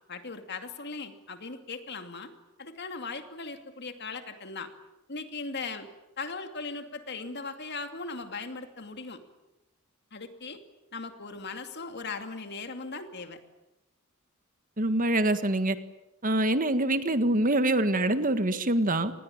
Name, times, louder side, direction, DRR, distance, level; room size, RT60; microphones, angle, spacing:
voice 1, 0.1-2.3 2.6-4.7 5.1-5.9 6.2-9.2 10.1-10.6 10.9-13.4, left 4 dB, 55° left, 7 dB, 2.6 m, -38 dB
voice 2, 14.8-15.7 16.2-19.1, right 1 dB, 40° right, 10 dB, 1.6 m, -25 dB
27.5 x 20.5 x 8.9 m, 0.95 s
head